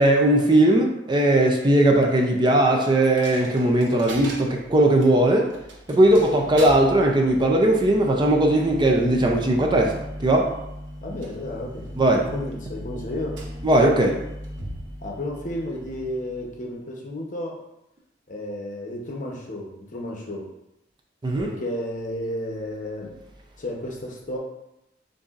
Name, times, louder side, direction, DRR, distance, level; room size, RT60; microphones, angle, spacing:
voice 1, 0.0-5.5 5.9-10.5 12.0-12.3 13.6-14.2 21.2-21.5, right 1 dB, 25° right, 1 dB, 0.5 m, -19 dB
Coin (dropping), 3.0-16.8, equal, 70° right, 0.9 m, -38 dB
voice 2, 11.0-13.3 15.0-17.6 18.3-20.5 21.4-23.2 23.6-24.4, left 1 dB, 45° left, -1 dB, 0.8 m, -32 dB
6.7 x 2.6 x 2.4 m, 0.87 s
head